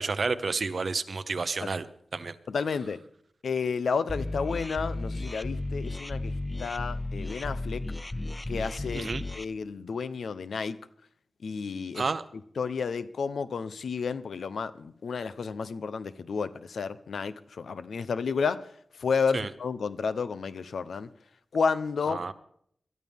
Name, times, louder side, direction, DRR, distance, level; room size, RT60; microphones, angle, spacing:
voice 1, 0.0-1.9 2.1-2.3 8.9-9.2 11.9-12.2 19.3-19.5 22.1-22.3, right 4 dB, 55° right, 11 dB, 1.0 m, -30 dB
voice 2, 2.5-3.0 3.4-6.3 6.6-7.8 8.5-10.8 11.4-12.0 12.6-18.6 19.0-21.1 21.5-22.2, left 5 dB, 90° left, 14 dB, 0.8 m, -31 dB
sound 1, 4.1-9.4, left 2 dB, 20° left, 0.5 m, -34 dB
22.0 x 13.5 x 3.6 m, 0.65 s
wide cardioid pair, 90°, 0 cm